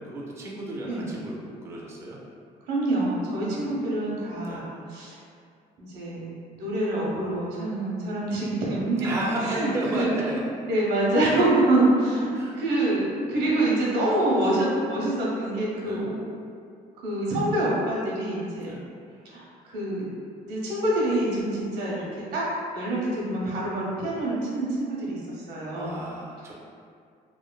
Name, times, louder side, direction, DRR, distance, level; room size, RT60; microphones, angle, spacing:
voice 1, 0.0-2.2 3.5-3.7 4.4-4.7 9.0-10.4 12.3-12.6 13.3-13.6 15.8-16.1 18.6-18.8 25.8-26.5, right 1 dB, 15° right, -4 dB, 0.3 m, -33 dB
voice 2, 2.7-5.2 5.8-6.3 6.6-9.1 9.4-16.2 17.0-18.7 19.2-20.1 20.5-22.1 22.3-22.5 22.7-26.0, right 1 dB, 75° right, -5 dB, 0.8 m, -26 dB
3.0 x 2.1 x 2.2 m, 2.2 s
cardioid pair, 110°, 17 cm